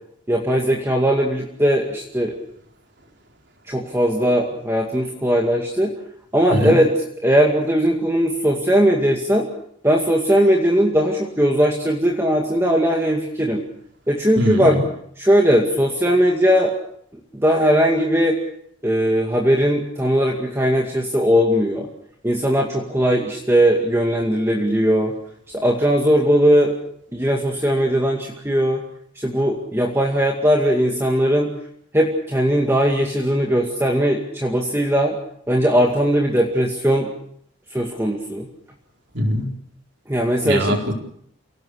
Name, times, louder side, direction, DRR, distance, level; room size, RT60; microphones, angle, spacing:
voice 1, 0.3-2.3 3.7-5.9 6.3-9.5 9.8-13.6 14.1-14.8 15.2-16.7 17.3-18.4 18.8-21.9 22.2-25.1 25.5-26.7 27.1-28.8 29.2-31.5 31.9-35.2 35.5-37.1 37.7-38.5 40.1-40.8, equal, 10° right, 0 dB, 2.2 m, -19 dB
voice 2, 14.4-14.8 39.1-39.5 40.4-40.9, equal, 55° right, 2 dB, 4.3 m, -21 dB
28.5 x 18.5 x 6.5 m, 0.69 s
head